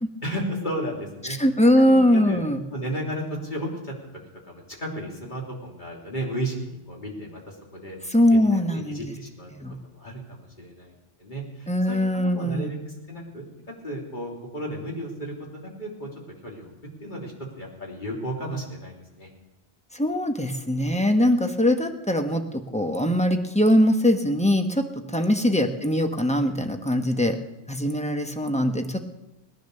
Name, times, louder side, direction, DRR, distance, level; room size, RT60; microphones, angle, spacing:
voice 1, 0.2-1.4 1.8-2.4 2.7-3.9 4.4-8.0 8.3-9.5 9.8-13.4 13.8-16.1 16.4-16.7 17.0-19.3 25.2-25.5, right 1 dB, 45° left, -1 dB, 3.3 m, -34 dB
voice 2, 1.4-2.6 8.1-9.1 9.5-9.7 11.7-12.7 19.9-27.4 27.7-29.1, left 1 dB, 5° left, 5 dB, 1.0 m, -22 dB
19.0 x 10.5 x 6.6 m, 0.95 s
omnidirectional pair, 1.1 m